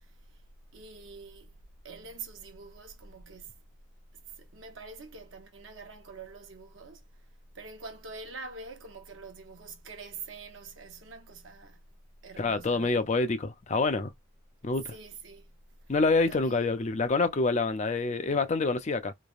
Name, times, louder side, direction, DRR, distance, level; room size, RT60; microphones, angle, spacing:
voice 1, 0.7-1.5 1.8-3.5 4.4-7.0 7.5-11.8 12.2-13.2 14.9-15.5 16.3-16.7, right 4 dB, 75° right, 0.9 m, -45 dB
voice 2, 12.4-14.1 14.6-14.9 15.9-19.1, left 3 dB, 35° left, 0.5 m, -27 dB
3.2 x 2.1 x 2.4 m
head